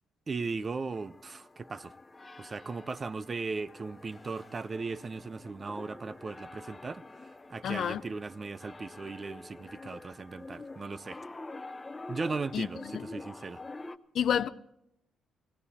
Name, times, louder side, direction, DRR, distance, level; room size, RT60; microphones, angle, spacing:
voice 1, 0.3-1.9 2.4-11.2 12.1-13.6, right 4 dB, 30° right, 0.6 m, -37 dB
sound 1, 0.9-14.0, left 2 dB, 20° left, 0.7 m, -47 dB
voice 2, 7.6-8.0 12.5-12.7 12.9-13.1 14.1-14.5, left 9 dB, 65° left, 0.6 m, -29 dB
19.0 x 17.0 x 4.2 m
cardioid pair, 110°, 0 cm